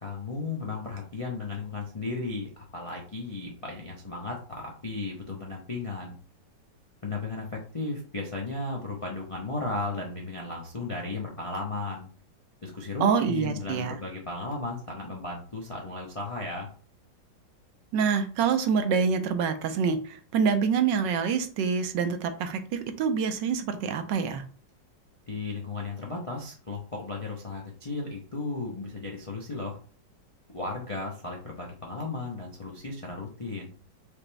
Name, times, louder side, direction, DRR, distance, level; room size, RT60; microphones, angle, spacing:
voice 1, 0.0-6.2 7.0-12.1 12.6-16.7 25.3-29.8 30.5-33.7, left 3 dB, 55° left, -2 dB, 0.3 m, -35 dB
voice 2, 13.0-14.0 17.9-24.4, right 6 dB, 80° right, 8 dB, 1.3 m, -26 dB
5.0 x 3.0 x 3.3 m, 0.42 s
omnidirectional pair, 2.0 m